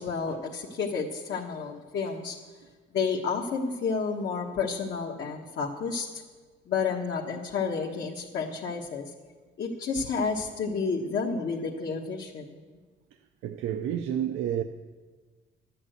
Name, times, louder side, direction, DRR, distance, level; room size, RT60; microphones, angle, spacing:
voice 1, 0.0-2.4 2.9-6.2 6.7-9.1 9.6-12.6, left 5 dB, 65° left, 1.3 m, -30 dB
voice 2, 13.4-14.6, right 10 dB, 85° right, 0.6 m, -29 dB
12.0 x 8.6 x 7.8 m
cardioid pair, 90°, 20 cm